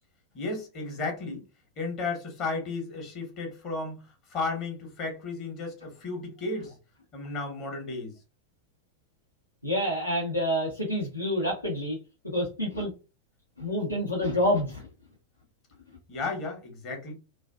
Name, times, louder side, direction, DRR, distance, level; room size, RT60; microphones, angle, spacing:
voice 1, 0.3-1.4 1.8-4.0 4.3-6.8 7.1-8.2 16.1-17.1, left 3 dB, 40° left, 0.9 m, -34 dB
voice 2, 9.6-12.0 12.2-12.9 13.6-14.9, left 1 dB, 85° left, 0.7 m, -28 dB
2.4 x 2.3 x 2.3 m
figure-of-eight pair, 90°, 0 cm